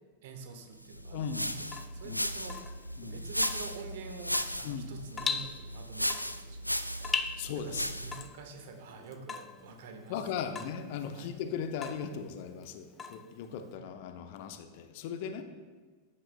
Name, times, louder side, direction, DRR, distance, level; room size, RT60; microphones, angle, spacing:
voice 1, 0.2-10.5 11.1-11.3, right 4 dB, 55° right, 5 dB, 1.2 m, -48 dB
sound 1, 0.9-8.3, equal, 90° left, 0.3 m, -36 dB
voice 2, 1.1-1.7 2.0-2.2 3.0-3.2 4.6-4.9 7.4-7.9 10.1-15.4, left 7 dB, 50° left, 8 dB, 0.8 m, -38 dB
Water tap faucet / Drip, 1.6-13.8, left 6 dB, 20° left, 0.5 m, -41 dB
13.5 x 9.7 x 2.2 m, 1.4 s
figure-of-eight pair, 90°, 0 cm